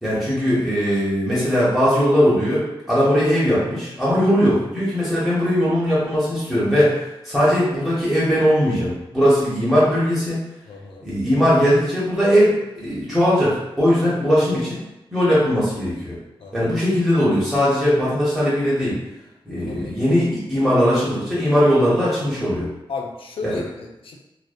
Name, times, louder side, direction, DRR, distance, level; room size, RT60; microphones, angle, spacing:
voice 1, 0.0-6.9 7.2-10.4 11.0-14.8 15.1-16.2 16.5-19.0 19.5-22.7 23.4-23.6, equal, ahead, -9 dB, 0.7 m, -19 dB
voice 2, 10.7-11.1 16.4-16.7 19.7-19.9 22.9-24.2, left 4 dB, 75° left, 1 dB, 0.4 m, -34 dB
2.5 x 2.0 x 2.4 m, 0.95 s
wide cardioid pair, 145°, 9 cm